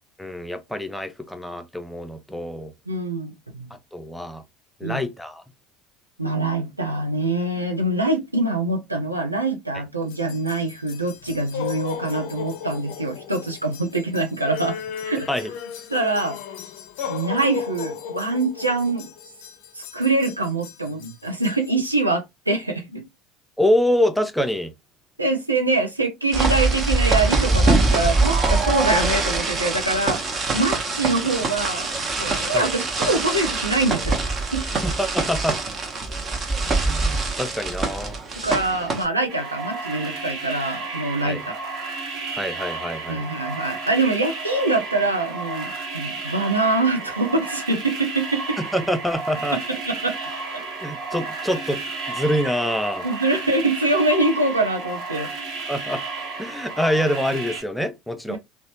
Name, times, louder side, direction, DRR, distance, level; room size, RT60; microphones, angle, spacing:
voice 1, 0.2-2.7 3.9-4.4 4.8-5.4 15.3-15.5 23.6-24.7 32.5-32.7 34.8-35.6 36.6-38.1 41.2-41.4 42.3-43.2 48.7-49.6 50.8-53.1 55.7-56.0 56.4-58.4, equal, 5° left, 0.5 m, -25 dB
voice 2, 2.9-3.7 4.8-5.0 6.2-15.3 15.9-16.4 17.1-19.1 19.7-23.1 25.2-31.9 32.2-34.7 38.4-41.4 43.1-48.6 49.5-50.2 53.0-55.3 58.3-58.4, right 2 dB, 85° right, 0.6 m, -24 dB
sound 1, 10.1-22.0, left 8 dB, 55° left, 0.4 m, -35 dB
sound 2, 26.3-39.1, right 3 dB, 30° right, 0.8 m, -23 dB
sound 3, 39.3-57.6, right 3 dB, 50° right, 1.1 m, -32 dB
3.0 x 2.1 x 2.8 m
figure-of-eight pair, 65°, 0 cm